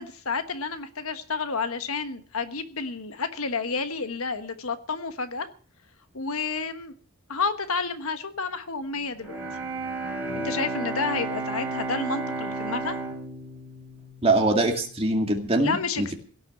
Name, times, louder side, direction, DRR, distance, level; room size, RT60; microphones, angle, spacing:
voice 1, 0.0-5.5 6.1-6.9 7.3-9.4 10.3-13.0 15.6-16.1, left 4 dB, 70° left, 9 dB, 1.3 m, -30 dB
Bowed string instrument, 9.2-15.2, right 2 dB, 5° right, 3.9 m, -33 dB
voice 2, 14.2-16.1, right 2 dB, 25° right, 3 dB, 2.2 m, -23 dB
17.0 x 6.3 x 9.5 m, 0.43 s
head